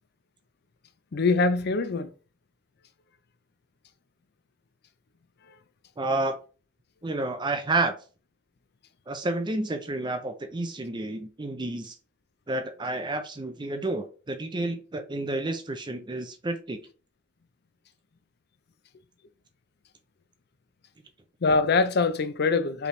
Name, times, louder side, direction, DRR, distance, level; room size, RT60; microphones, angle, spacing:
voice 1, 1.1-2.1 21.4-22.9, left 4 dB, 60° left, 0.5 m, -23 dB
voice 2, 6.0-6.4 7.0-7.9 9.1-11.9 12.5-16.8, right 2 dB, 25° right, 0.5 m, -30 dB
4.8 x 3.4 x 3.2 m
head